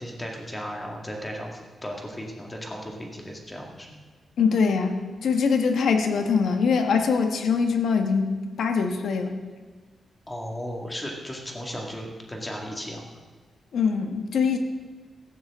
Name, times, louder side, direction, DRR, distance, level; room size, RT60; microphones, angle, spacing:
voice 1, 0.0-4.0 10.3-13.0, equal, 10° left, 0 dB, 2.0 m, -35 dB
voice 2, 4.4-5.0 5.2-8.3 8.6-9.3 13.7-14.6, left 5 dB, 70° left, 5 dB, 1.4 m, -23 dB
17.0 x 14.5 x 3.7 m, 1.4 s
wide cardioid pair, 170°, 0 cm